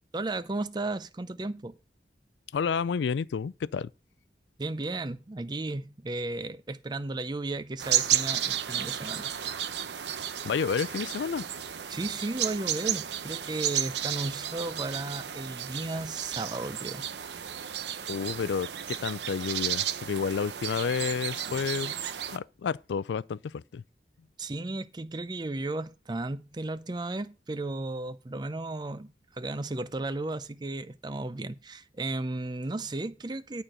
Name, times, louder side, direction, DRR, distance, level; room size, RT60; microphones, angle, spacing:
voice 1, 0.1-1.8 4.6-9.3 11.9-17.1 24.4-33.6, right 2 dB, 25° right, 0.5 m, -34 dB
voice 2, 2.5-3.9 10.4-11.4 18.1-21.9 22.3-23.8, left 6 dB, 85° left, 0.4 m, -30 dB
sound 1, 7.8-22.4, right 10 dB, 75° right, 0.7 m, -33 dB
11.0 x 4.4 x 6.4 m
head